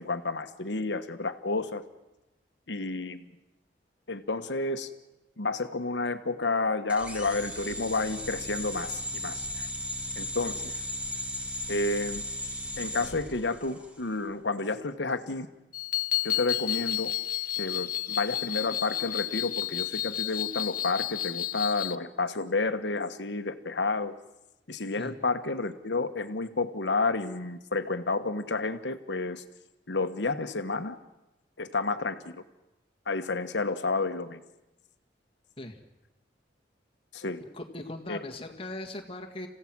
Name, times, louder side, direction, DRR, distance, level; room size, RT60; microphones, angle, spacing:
voice 1, 0.0-1.8 2.7-3.2 4.1-4.9 5.4-9.7 10.1-10.8 11.7-12.2 12.8-15.5 16.2-17.1 17.6-24.2 24.7-29.4 29.9-31.0 31.6-32.4 33.1-34.4 37.1-37.4 38.1-38.2, left 3 dB, 75° left, 9 dB, 1.2 m, -30 dB
sound 1, 6.9-14.0, equal, 5° right, 1.9 m, -36 dB
sound 2, 15.7-22.0, left 13 dB, 50° left, 0.9 m, -31 dB
voice 2, 37.4-39.5, left 1 dB, 30° left, 3 dB, 1.8 m, -39 dB
28.0 x 16.0 x 6.1 m, 0.98 s
head